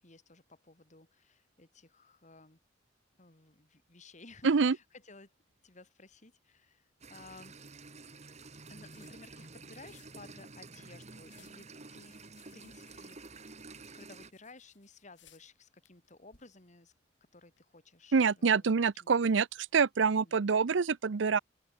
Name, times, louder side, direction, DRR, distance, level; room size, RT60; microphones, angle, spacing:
voice 1, 0.0-2.6 3.2-5.3 5.6-7.6 8.7-12.2 12.5-13.2 13.7-16.9 17.3-18.7 18.9-19.1 20.2-20.4, left 3 dB, 40° left, 3.1 m, -56 dB
voice 2, 4.4-4.7 18.1-21.4, right 5 dB, 80° right, 0.6 m, -26 dB
sound 1, 5.5-17.6, left 10 dB, 75° left, 7.2 m, -69 dB
sound 2, 7.0-14.3, right 3 dB, 35° right, 2.1 m, -50 dB
head